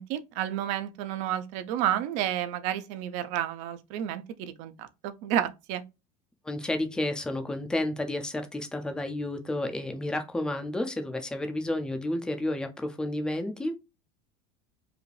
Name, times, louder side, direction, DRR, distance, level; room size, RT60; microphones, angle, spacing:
voice 1, 0.0-5.8, right 11 dB, 45° right, 0.5 m, -31 dB
voice 2, 6.4-13.7, left 1 dB, 5° left, 0.4 m, -31 dB
4.8 x 2.6 x 3.1 m
cardioid pair, 175°, 17 cm